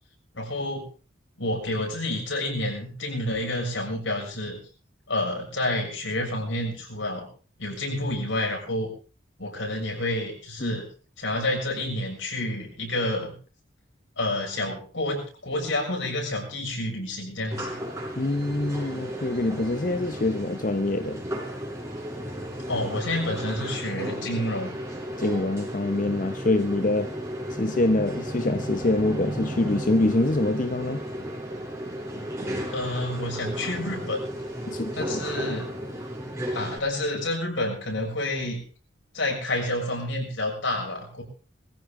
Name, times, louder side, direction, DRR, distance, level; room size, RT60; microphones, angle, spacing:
voice 1, 0.3-0.8 1.4-4.6 5.1-7.3 7.6-8.9 9.4-10.8 11.2-13.3 14.2-17.8 22.7-24.7 32.7-34.2 34.9-35.7 36.5-38.6 39.1-41.2, left 1 dB, 75° left, 6.7 m, -29 dB
sound 1, 17.5-36.8, equal, 15° right, 4.6 m, -34 dB
voice 2, 18.2-21.2 25.2-27.1 27.5-31.0 34.7-35.2, left 2 dB, 45° left, 0.8 m, -25 dB
22.0 x 15.0 x 3.7 m
head